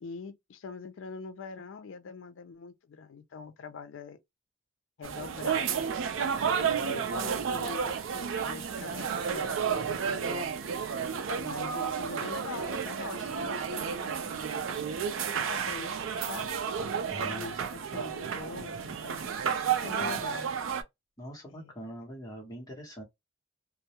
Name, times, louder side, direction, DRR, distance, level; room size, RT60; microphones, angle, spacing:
voice 1, 0.0-4.2 5.0-5.8 6.5-9.9 10.3-10.6 11.3-14.7 15.4-16.6 17.2-19.3 19.8-20.5 21.5-21.7, left 5 dB, 70° left, 0.4 m, -43 dB
sound 1, 5.0-20.8, right 7 dB, 75° right, 0.4 m, -32 dB
voice 2, 17.1-17.5 20.0-20.2 21.2-23.0, right 1 dB, 20° left, 0.8 m, -43 dB
2.2 x 2.0 x 2.7 m
head